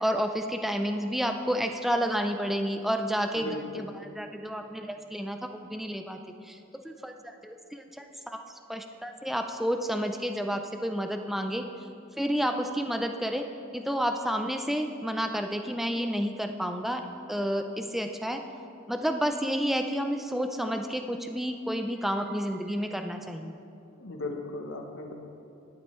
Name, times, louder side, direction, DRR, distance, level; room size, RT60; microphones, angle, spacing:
voice 1, 0.0-3.5 3.8-6.2 6.5-6.6 6.8-8.4 8.7-11.6 12.2-13.4 13.7-17.0 17.3-18.4 18.9-23.6, equal, ahead, 5 dB, 0.3 m, -30 dB
voice 2, 3.3-3.9 23.8-25.1, left 2 dB, 65° left, 4 dB, 0.8 m, -37 dB
12.0 x 7.5 x 3.1 m, 2.6 s
head